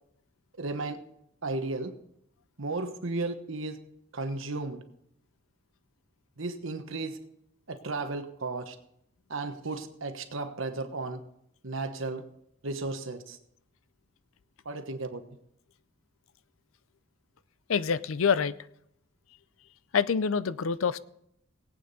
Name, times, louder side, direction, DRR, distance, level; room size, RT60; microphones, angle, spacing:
voice 1, 0.6-1.0 1.4-1.9 2.6-3.8 4.1-4.8 6.4-7.2 7.7-8.8 9.3-11.2 11.6-12.2 12.6-13.4 14.6-15.2, right 3 dB, 65° right, 8 dB, 1.2 m, -34 dB
voice 2, 17.7-18.6 19.9-21.0, left 6 dB, 70° left, 17 dB, 0.5 m, -26 dB
18.5 x 8.8 x 4.1 m, 0.73 s
head